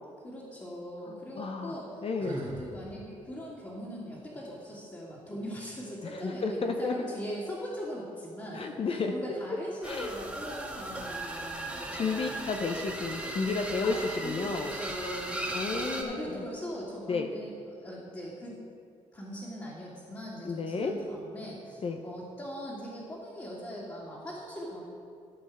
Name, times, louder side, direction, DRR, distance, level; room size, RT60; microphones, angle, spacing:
voice 1, 0.2-12.6 13.8-18.6 19.1-24.8, equal, 25° left, -8 dB, 2.7 m, -41 dB
voice 2, 1.1-1.7 2.0-2.5 6.2-6.9 8.5-9.1 9.9-10.1 11.9-14.0 14.2-14.7 15.5-16.4 17.1-17.3 20.4-20.9 21.8-22.0, left 4 dB, 50° left, 4 dB, 0.8 m, -32 dB
Sigh, 2.2-2.7, right 2 dB, 80° right, 2.0 m, -40 dB
sound 1, 9.8-16.0, right 1 dB, 10° right, 1.6 m, -37 dB
14.0 x 5.6 x 5.0 m, 2.4 s
supercardioid pair, 65°, 13 cm